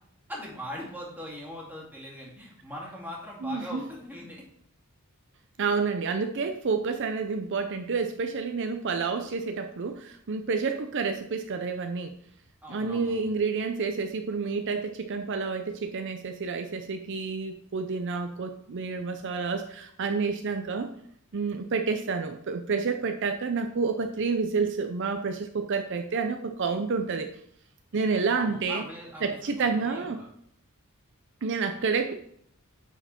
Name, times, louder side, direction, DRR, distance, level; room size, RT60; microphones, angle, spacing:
voice 1, 0.3-4.4 12.6-13.3 28.4-30.3, equal, 10° right, -3 dB, 2.2 m, -41 dB
voice 2, 3.4-3.8 5.6-12.1 12.7-20.9 21.3-27.3 27.9-28.9 29.2-30.2 31.4-32.1, right 4 dB, 55° right, 6 dB, 0.5 m, -29 dB
10.0 x 4.6 x 4.3 m, 0.69 s
head